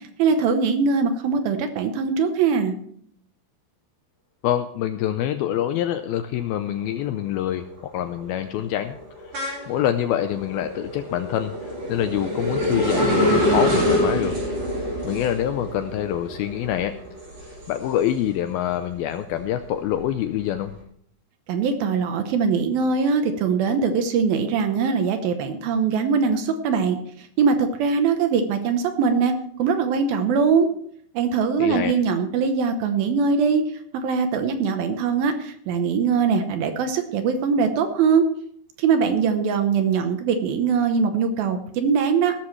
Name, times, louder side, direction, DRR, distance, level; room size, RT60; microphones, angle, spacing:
voice 1, 0.0-2.8 21.5-30.7 31.1-33.6 34.0-38.3 38.8-42.4, right 5 dB, 70° right, 7 dB, 2.5 m, -22 dB
voice 2, 4.4-9.0 9.2-14.4 15.0-17.0 17.7-20.8 31.6-31.9, left 11 dB, 85° left, 9 dB, 2.2 m, -26 dB
sound 1, 6.4-6.8 7.2-18.5 18.9-20.6, left 1 dB, 30° right, 4.3 m, -26 dB
16.5 x 13.0 x 3.3 m, 0.65 s
omnidirectional pair, 4.9 m